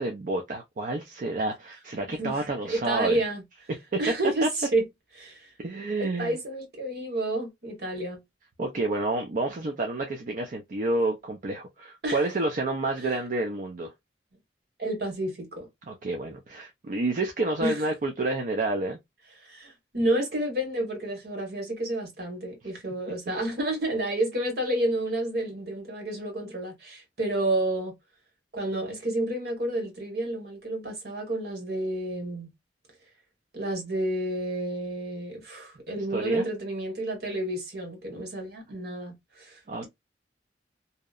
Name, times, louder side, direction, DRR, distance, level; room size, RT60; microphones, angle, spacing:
voice 1, 0.0-3.2 3.9-4.0 4.4-4.5 5.6-6.4 8.6-13.9 15.9-19.0 36.1-36.5 39.7-39.8, right 2 dB, 50° right, 0.4 m, -29 dB
voice 2, 2.2-3.4 4.0-4.8 5.2-5.5 6.0-8.2 12.0-12.2 13.0-13.2 14.8-15.7 17.6-17.8 19.4-27.9 28.5-32.5 33.5-39.8, right 1 dB, 65° right, 1.1 m, -30 dB
2.7 x 2.0 x 2.3 m
head